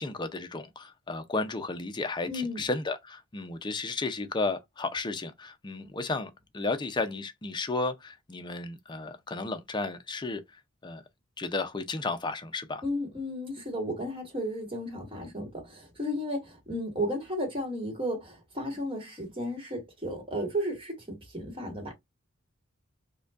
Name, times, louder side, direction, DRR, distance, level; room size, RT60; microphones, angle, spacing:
voice 1, 0.0-11.0 11.4-12.8, left 3 dB, 20° left, 0.5 m, -33 dB
voice 2, 2.3-2.6 12.8-21.9, equal, 25° right, 1.3 m, -34 dB
5.1 x 2.2 x 2.3 m
head